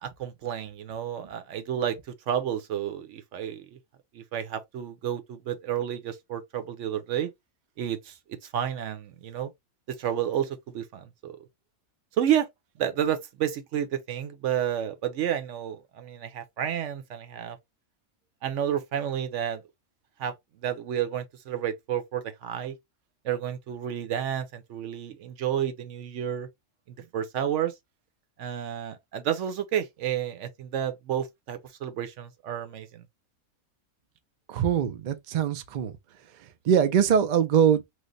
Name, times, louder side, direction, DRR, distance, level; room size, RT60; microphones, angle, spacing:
voice 1, 0.0-2.0 2.3-3.8 4.1-7.3 7.8-8.1 8.5-9.5 9.9-11.4 12.2-12.5 12.8-17.6 18.4-19.6 20.2-20.3 20.6-22.8 23.2-26.5 27.1-27.7 28.4-33.0, right 10 dB, 65° right, 0.9 m, -30 dB
voice 2, 34.5-35.9 36.7-37.8, right 8 dB, 80° right, 0.4 m, -22 dB
3.1 x 2.1 x 3.8 m
omnidirectional pair, 1.5 m